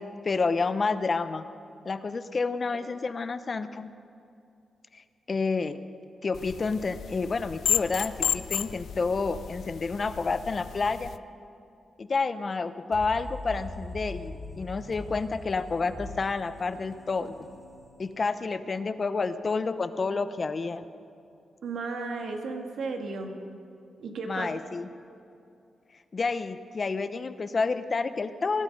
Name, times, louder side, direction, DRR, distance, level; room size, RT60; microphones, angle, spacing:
voice 1, 0.0-1.4 1.8-3.9 4.9-5.0 5.3-5.8 6.2-11.1 12.0-17.3 18.0-20.8 24.3-24.9 26.1-28.6, left 4 dB, 40° left, 12 dB, 0.7 m, -29 dB
sound 1, 6.3-11.2, left 8 dB, 70° left, 0.4 m, -33 dB
sound 2, 12.9-18.6, left 1 dB, 15° left, 3.2 m, -42 dB
voice 2, 21.6-23.3 24.0-24.7, right 3 dB, 75° right, 3 dB, 1.9 m, -34 dB
20.0 x 12.0 x 5.3 m, 2.6 s
cardioid pair, 95°, 0 cm